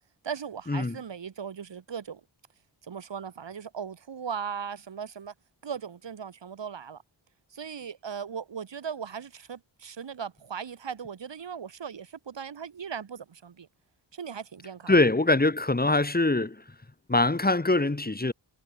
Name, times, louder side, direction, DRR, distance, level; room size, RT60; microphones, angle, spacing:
voice 1, 0.2-2.2 2.8-5.3 5.6-7.0 7.5-13.7 14.1-15.0, right 7 dB, 85° right, 4.3 m, -38 dB
voice 2, 14.9-16.6 17.1-18.3, left 2 dB, 20° left, 3.6 m, -23 dB
wide cardioid pair, 110°, 42 cm